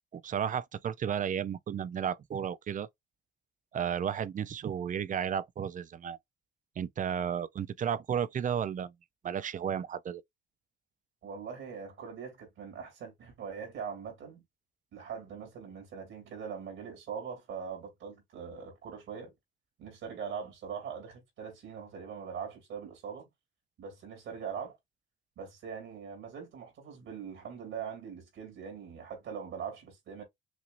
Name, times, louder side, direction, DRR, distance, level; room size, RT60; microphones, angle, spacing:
voice 1, 0.1-2.9 3.7-6.2 6.8-8.9 9.2-10.2, right 8 dB, 40° right, 0.5 m, -33 dB
voice 2, 11.2-14.4 14.9-19.3 19.8-23.3 23.8-24.8 25.4-30.2, right 6 dB, 80° right, 2.7 m, -42 dB
6.0 x 2.7 x 2.5 m
cardioid pair, 90°, 20 cm